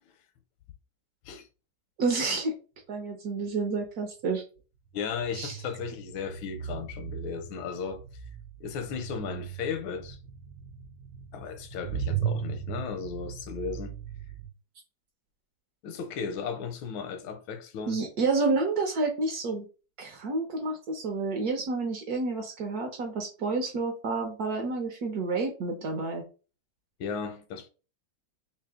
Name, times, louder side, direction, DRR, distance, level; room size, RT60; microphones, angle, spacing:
voice 1, 2.0-2.5 2.9-4.4 5.3-5.6 17.9-19.7 20.0-26.2, right 3 dB, 65° right, 1.0 m, -29 dB
sound 1, 3.8-3.9 4.9-14.5, right 8 dB, 85° right, 0.8 m, -37 dB
voice 2, 4.9-8.0 8.6-10.2 11.3-14.0 15.8-18.0 27.0-27.7, left 6 dB, 85° left, 1.4 m, -35 dB
3.3 x 2.8 x 3.5 m
omnidirectional pair, 2.2 m